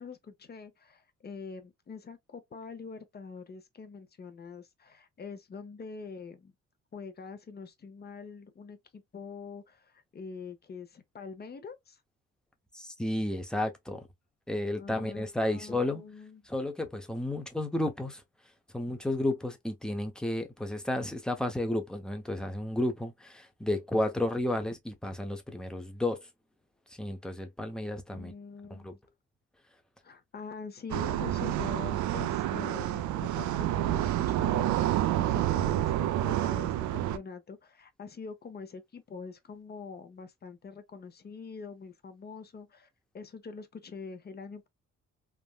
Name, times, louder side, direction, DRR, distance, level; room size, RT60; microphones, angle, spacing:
voice 1, 0.0-6.5 6.9-12.0 14.7-16.4 28.1-29.0 30.0-42.9 43.1-44.7, left 5 dB, 35° left, 0.8 m, -44 dB
voice 2, 12.7-14.1 14.5-16.1 16.5-18.2 18.7-26.3 26.9-28.3 28.8-29.0, left 1 dB, ahead, 0.7 m, -32 dB
sound 1, 30.9-37.2, right 13 dB, 70° right, 0.4 m, -28 dB
3.4 x 2.1 x 2.3 m
cardioid pair, 90°, 30 cm